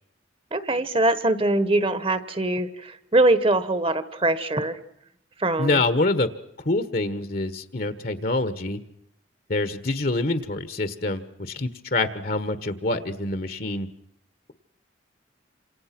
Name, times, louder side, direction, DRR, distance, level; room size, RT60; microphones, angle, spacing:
voice 1, 0.5-4.8 5.4-5.8, right 2 dB, 30° right, 13 dB, 1.4 m, -22 dB
voice 2, 5.6-6.3 6.6-8.8 9.5-13.9, left 2 dB, 50° left, 11 dB, 1.3 m, -26 dB
28.5 x 27.0 x 6.0 m, 0.77 s
head